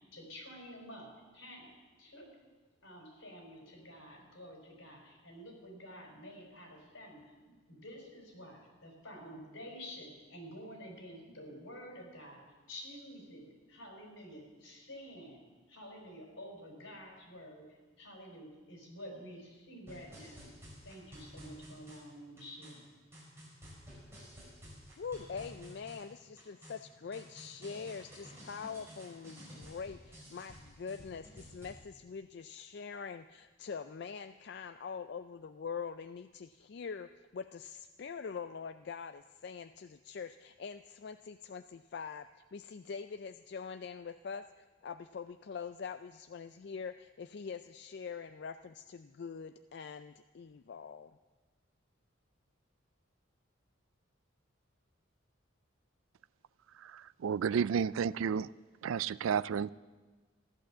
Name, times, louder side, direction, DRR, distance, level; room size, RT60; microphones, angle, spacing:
voice 1, 0.0-2.4 2.8-15.4 15.7-20.5 20.8-22.9, equal, 80° left, 1 dB, 4.8 m, -50 dB
sound 1, 19.9-31.7, equal, 15° right, 5.5 m, -53 dB
voice 2, 25.0-51.2, left 6 dB, 55° left, 10 dB, 0.4 m, -44 dB
voice 3, 56.8-58.5 58.8-59.7, right 7 dB, 85° right, 19 dB, 0.4 m, -32 dB
14.5 x 11.0 x 7.4 m, 1.3 s
head